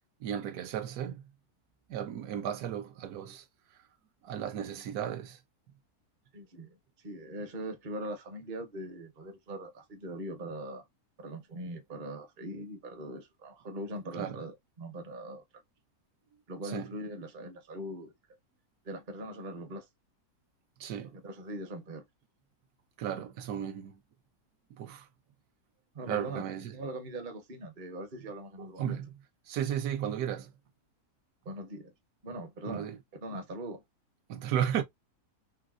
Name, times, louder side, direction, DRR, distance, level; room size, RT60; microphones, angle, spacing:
voice 1, 0.2-1.2 1.9-3.5 3.7-3.8 4.2-5.4 14.2-14.4 16.6-16.9 20.8-21.2 23.0-24.0 24.7-25.1 26.1-26.7 28.6-29.1 29.5-30.5 32.7-33.0 34.3-34.8, right 9 dB, 75° right, 1.1 m, -34 dB
voice 2, 6.3-6.8 7.0-10.8 11.2-15.4 16.5-18.1 18.8-19.9 21.1-22.0 25.9-26.4 26.7-29.0 31.4-31.9 32.2-32.9 33.2-33.8, right 1 dB, 40° right, 0.7 m, -41 dB
3.9 x 2.0 x 2.3 m
omnidirectional pair, 1.6 m